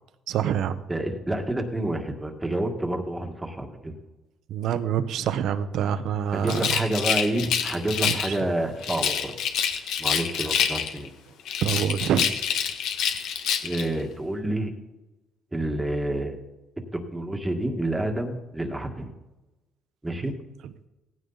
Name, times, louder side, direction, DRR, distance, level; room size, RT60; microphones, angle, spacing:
voice 1, 0.3-0.8 4.5-6.6 8.0-8.1 11.6-12.2, right 9 dB, 60° right, 11 dB, 1.1 m, -25 dB
voice 2, 0.9-3.9 6.3-9.3 10.0-11.1 13.6-14.7 15.5-16.4 16.9-19.1 20.0-20.3, right 1 dB, 10° right, 4 dB, 1.7 m, -28 dB
Rattle, 6.4-8.4 8.8-11.1 11.4-13.9, left 8 dB, 70° left, 1.6 m, -27 dB
17.5 x 15.5 x 4.1 m, 1.1 s
cardioid pair, 155°, 0 cm